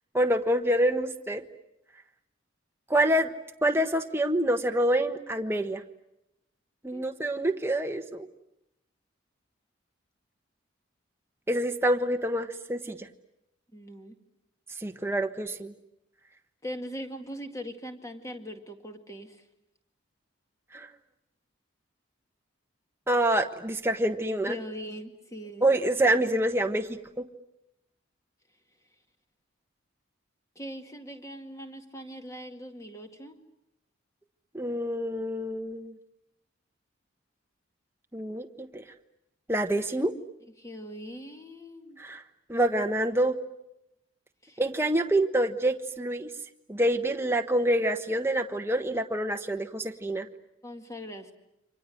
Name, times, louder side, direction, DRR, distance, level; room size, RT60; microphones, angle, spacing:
voice 1, 0.1-1.4 2.9-3.3 3.6-5.8 6.8-8.3 11.5-13.1 14.8-15.7 20.7-20.9 23.1-24.6 25.6-27.3 34.5-35.9 38.1-38.8 39.5-40.1 42.0-42.2 42.5-43.4 44.6-46.3 46.7-50.3, right 1 dB, 10° right, 6 dB, 1.2 m, -26 dB
voice 2, 13.7-14.2 16.6-19.4 24.3-25.7 30.6-33.4 40.6-42.0 44.4-44.6 50.6-51.3, equal, 15° left, 5 dB, 2.2 m, -41 dB
29.5 x 25.5 x 7.9 m, 0.87 s
head